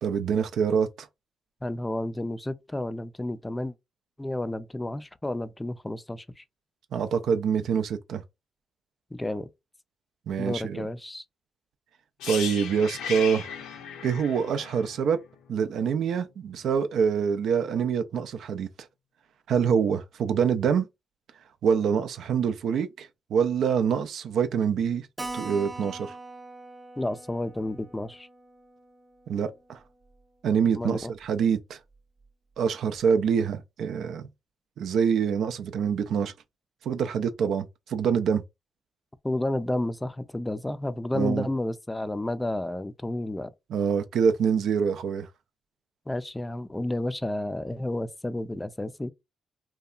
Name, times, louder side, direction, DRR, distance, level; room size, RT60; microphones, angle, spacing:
voice 1, 0.0-1.1 6.9-8.2 10.3-10.9 12.3-13.5 14.0-15.2 15.5-18.7 19.5-20.9 21.6-25.1 25.3-26.2 29.3-29.8 30.4-31.8 32.6-34.3 34.8-36.3 36.8-38.4 41.1-41.5 43.7-45.3, right 7 dB, 70° right, 0.3 m, -25 dB
voice 2, 1.6-3.7 4.2-6.4 9.1-9.5 10.4-11.2 27.0-28.3 30.7-31.1 39.2-43.5 46.1-49.1, left 1 dB, 15° left, 0.4 m, -31 dB
sound 1, 12.2-16.1 16.3-16.5, left 7 dB, 85° left, 0.5 m, -37 dB
Keyboard (musical), 25.2-30.2 30.5-30.6 30.9-31.0 31.2-31.3 31.9-32.3, right 2 dB, 30° right, 0.6 m, -42 dB
2.7 x 2.2 x 2.4 m
supercardioid pair, 55°, 0 cm